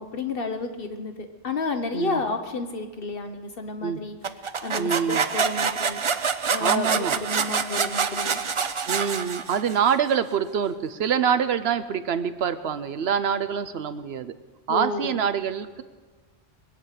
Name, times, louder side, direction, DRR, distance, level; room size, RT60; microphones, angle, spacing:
voice 1, 0.0-4.2 4.6-6.0 6.5-8.4 14.7-15.1, left 3 dB, 60° left, 7 dB, 1.1 m, -31 dB
voice 2, 1.9-2.2 3.8-4.0 4.8-5.2 6.6-7.2 8.9-14.3 14.7-15.8, right 7 dB, 70° right, 12 dB, 0.9 m, -25 dB
sound 1, 4.2-9.9, right 5 dB, 35° right, 0.5 m, -26 dB
22.5 x 9.2 x 6.5 m, 1.3 s
omnidirectional pair, 1.1 m